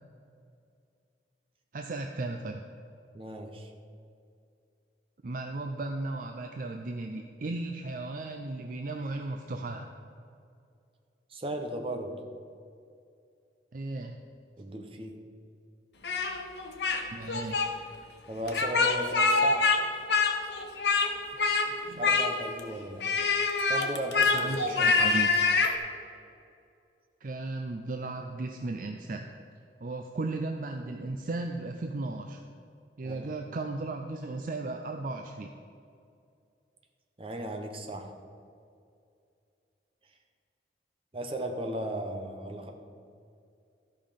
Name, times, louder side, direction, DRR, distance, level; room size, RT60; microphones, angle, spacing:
voice 1, 1.7-2.6 5.2-9.9 13.7-14.2 17.1-17.7 21.7-22.1 24.3-25.3 27.2-29.3 29.8-32.4 33.0-35.6, right 2 dB, 50° right, 4 dB, 0.5 m, -35 dB
voice 2, 3.1-3.7 11.3-12.2 14.6-15.2 18.3-19.7 21.9-23.1 23.7-25.0 33.0-33.3 37.2-38.1 41.1-42.7, right 1 dB, 30° right, 4 dB, 0.9 m, -36 dB
Speech, 16.0-17.0 17.3-17.7 18.5-19.8 20.1-21.1 21.4-21.7 22.0-22.6 23.0-25.7, left 4 dB, 70° left, 0.9 m, -25 dB
13.5 x 5.5 x 5.2 m, 2.4 s
head